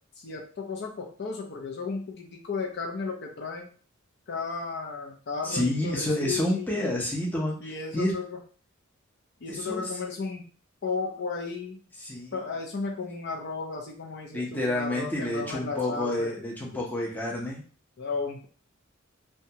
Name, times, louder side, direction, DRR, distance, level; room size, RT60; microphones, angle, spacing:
voice 1, 0.2-3.7 4.3-7.0 7.6-8.2 9.4-10.4 10.8-11.8 12.3-16.4 18.0-18.4, left 4 dB, 55° left, 0 dB, 0.6 m, -34 dB
voice 2, 5.4-8.1 9.5-9.9 12.0-12.4 14.3-17.6, left 1 dB, 10° left, -3 dB, 0.6 m, -29 dB
2.8 x 2.2 x 2.8 m, 0.41 s
head